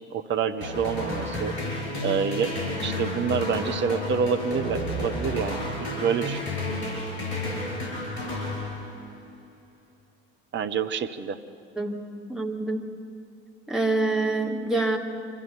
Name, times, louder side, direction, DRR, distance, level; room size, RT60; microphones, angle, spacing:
voice 1, 0.0-1.5 2.0-6.6 10.5-11.4, right 6 dB, 35° right, 9 dB, 0.9 m, -28 dB
sound 1, 0.6-9.2, left 1 dB, 70° left, 7.1 m, -31 dB
voice 2, 12.3-12.9 13.7-15.0, right 2 dB, ahead, 0 dB, 2.5 m, -26 dB
25.0 x 15.0 x 6.9 m, 2.4 s
figure-of-eight pair, 60°, 34 cm